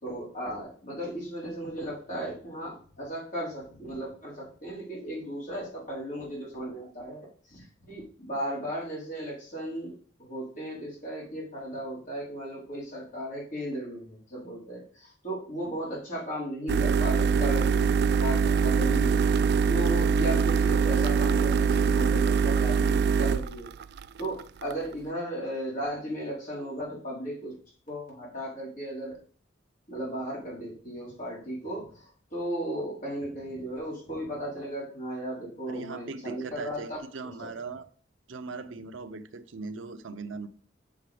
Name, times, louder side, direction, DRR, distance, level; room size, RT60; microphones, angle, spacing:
voice 1, 0.0-19.2 19.7-23.7 24.2-27.5 27.9-29.2 29.9-37.5, equal, 45° left, 4.0 m, -36 dB
sound 1, 16.7-24.9, right 6 dB, 55° right, 0.3 m, -23 dB
voice 2, 35.7-37.9 38.3-40.5, right 4 dB, 80° right, 0.7 m, -39 dB
6.9 x 6.3 x 4.8 m
head